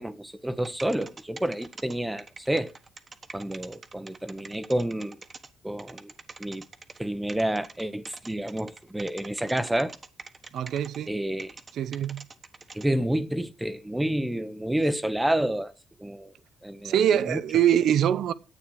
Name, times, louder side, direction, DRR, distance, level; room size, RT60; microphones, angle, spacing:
voice 1, 0.0-2.7 3.3-5.2 5.6-6.1 6.4-6.6 7.0-9.9 11.1-11.6 12.7-15.7 16.0-16.3 16.6-16.9 17.2-17.4, right 1 dB, 10° right, 1.0 m, -29 dB
sound 1, 0.6-5.5 5.8-7.0 7.3-11.1 11.4-12.9, right 4 dB, 35° right, 1.3 m, -44 dB
voice 2, 10.5-11.1 11.7-12.2 16.8-18.3, right 10 dB, 75° right, 0.8 m, -23 dB
10.5 x 8.5 x 6.4 m
cardioid pair, 90°, 0 cm